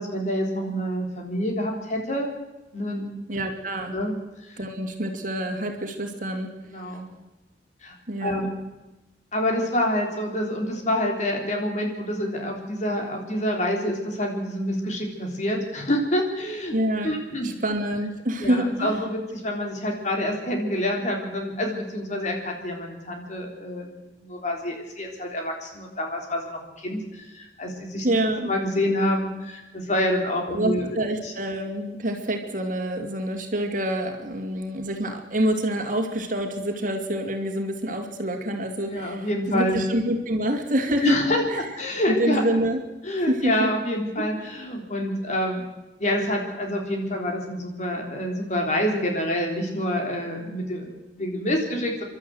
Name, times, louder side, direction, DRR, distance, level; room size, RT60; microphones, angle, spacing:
voice 1, 0.0-2.3 2.7-3.1 3.9-4.2 4.4-4.6 6.7-7.1 7.8-8.6 9.3-16.8 17.0-17.5 18.4-23.9 24.2-28.1 28.5-30.9 31.2-31.3 38.9-39.8 41.0-42.4 43.0-45.7 46.0-52.0, left 1 dB, 45° left, 1 dB, 3.7 m, -27 dB
voice 2, 3.3-4.0 4.6-7.0 8.1-8.4 16.7-17.2 17.4-19.0 28.0-28.5 30.5-41.2 41.5-41.7 42.1-42.8 43.3-43.7 44.2-44.3, right 1 dB, 50° right, 4 dB, 2.4 m, -27 dB
29.5 x 12.0 x 7.9 m, 1.1 s
head